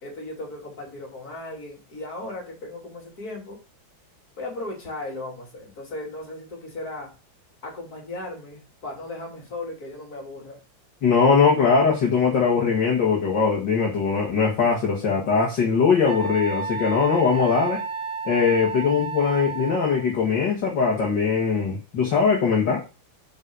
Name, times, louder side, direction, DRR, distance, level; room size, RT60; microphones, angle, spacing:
voice 1, 0.0-3.6 4.4-7.1 7.6-10.6, left 2 dB, 50° left, -1 dB, 3.7 m, -36 dB
voice 2, 11.0-17.8 18.3-22.8, left 5 dB, 65° left, -2 dB, 2.4 m, -21 dB
Wind instrument woodwind instrument, 16.0-20.1, right 4 dB, 35° right, 3.4 m, -32 dB
6.9 x 5.5 x 6.3 m, 0.31 s
omnidirectional pair, 2.1 m